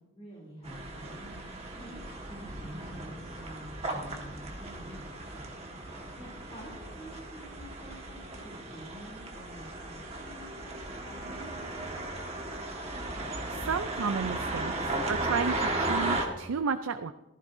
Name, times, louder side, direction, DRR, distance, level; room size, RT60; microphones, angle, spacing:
voice 1, 0.0-5.6 6.2-12.0, right 1 dB, 30° left, -4 dB, 3.2 m, -48 dB
sound 1, 0.6-16.3, right 2 dB, 30° right, 1.6 m, -36 dB
voice 2, 13.5-14.7 15.1-17.1, right 5 dB, 80° right, 10 dB, 0.5 m, -32 dB
15.0 x 15.0 x 2.7 m, 0.96 s
head